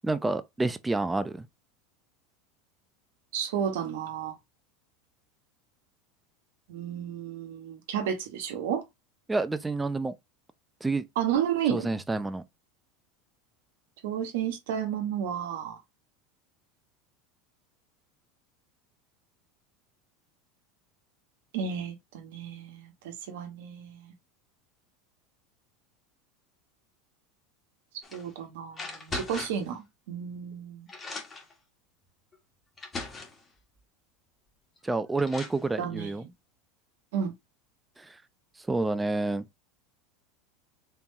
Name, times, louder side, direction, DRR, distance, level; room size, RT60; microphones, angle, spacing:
voice 1, 0.0-1.5 9.3-10.1 10.8-11.0 11.7-12.4 34.8-36.3 38.0-38.1 38.7-39.4, right 2 dB, 10° right, 0.6 m, -29 dB
voice 2, 3.3-4.4 6.7-8.8 11.2-11.9 14.0-15.8 21.5-24.1 28.1-30.9 35.8-36.1 37.1-37.3, right 8 dB, 70° right, 1.1 m, -32 dB
sound 1, 28.0-28.3 28.7-29.7 30.5-30.6 30.9-31.5 32.3-32.4 32.8-33.4 34.8-34.9 35.2-35.6, left 3 dB, 25° left, 1.8 m, -39 dB
4.5 x 3.5 x 2.7 m
hypercardioid pair, 90°, 0 cm